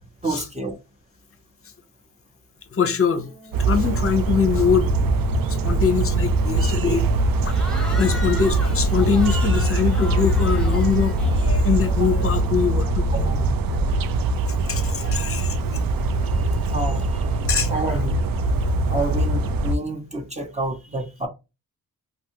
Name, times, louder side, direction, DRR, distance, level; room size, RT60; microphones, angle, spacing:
voice 1, 0.2-0.8 12.0-12.1 13.1-13.3 16.4-17.2 17.7-18.2 18.9-21.3, right 2 dB, 20° right, 0.6 m, -29 dB
voice 2, 2.7-3.3 3.6-4.9 5.6-7.1 7.4-13.5 14.4-15.6 17.5-18.0, left 6 dB, 40° left, 0.6 m, -23 dB
Organ, 3.1-14.0, left 2 dB, 85° right, 1.8 m, -42 dB
sound 1, 3.5-19.7, right 2 dB, 65° right, 0.5 m, -22 dB
Cheering / Crowd, 7.5-12.1, equal, ahead, 0.9 m, -37 dB
2.7 x 2.3 x 2.8 m
cardioid pair, 90°, 37 cm